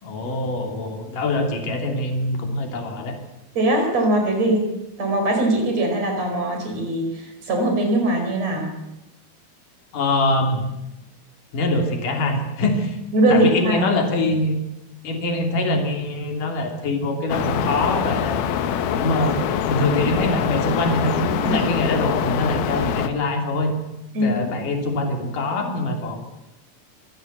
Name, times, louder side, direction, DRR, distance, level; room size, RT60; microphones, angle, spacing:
voice 1, 0.0-3.2 9.9-10.6 11.5-13.0 13.3-14.6 15.0-18.4 18.9-19.4 19.7-23.7 24.2-26.2, left 2 dB, 60° left, 4 dB, 4.6 m, -23 dB
voice 2, 3.6-4.7 5.0-8.7 13.1-13.9 21.4-21.6 24.1-24.4, right 1 dB, 45° right, 4 dB, 6.0 m, -21 dB
sound 1, 17.3-23.1, left 8 dB, 80° left, 3.1 m, -24 dB
26.0 x 16.0 x 8.1 m, 0.94 s
omnidirectional pair, 4.2 m